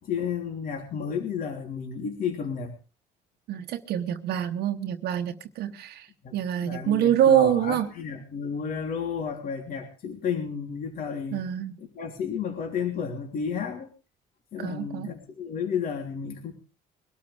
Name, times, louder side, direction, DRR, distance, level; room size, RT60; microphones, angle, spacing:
voice 1, 0.0-2.7 6.2-6.3 6.6-11.4 11.8-13.9 14.5-16.5, left 6 dB, 55° left, 2 dB, 3.3 m, -32 dB
voice 2, 3.5-6.1 6.3-7.9 11.3-11.8 14.6-15.1, right 10 dB, 70° right, 5 dB, 1.1 m, -25 dB
23.0 x 13.0 x 3.4 m, 0.33 s
cardioid pair, 110°, 17 cm